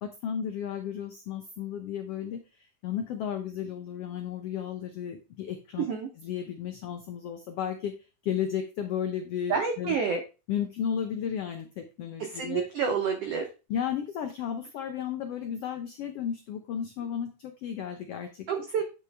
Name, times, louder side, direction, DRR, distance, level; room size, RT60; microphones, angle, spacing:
voice 1, 0.0-5.8 6.2-7.9 8.2-10.0 10.5-12.7 13.7-18.5, left 8 dB, 90° left, 6 dB, 1.3 m, -34 dB
voice 2, 5.8-6.1 9.5-10.2 12.2-13.5 18.5-18.8, right 6 dB, 90° right, 5 dB, 1.3 m, -28 dB
8.5 x 4.8 x 3.3 m, 0.31 s
omnidirectional pair, 3.7 m